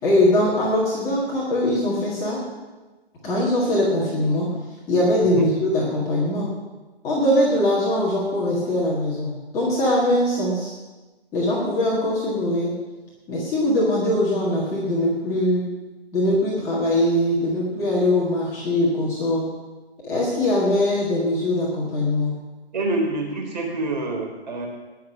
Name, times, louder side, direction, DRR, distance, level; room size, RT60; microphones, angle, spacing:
voice 1, 0.0-2.4 3.2-4.5 4.9-6.5 7.0-10.7 11.3-12.7 13.3-15.7 16.1-19.5 20.0-22.3, left 1 dB, 10° left, -6 dB, 1.8 m, -21 dB
voice 2, 22.7-24.7, right 2 dB, 45° right, 1 dB, 3.8 m, -27 dB
19.5 x 6.6 x 6.4 m, 1.2 s
figure-of-eight pair, 160°, 32 cm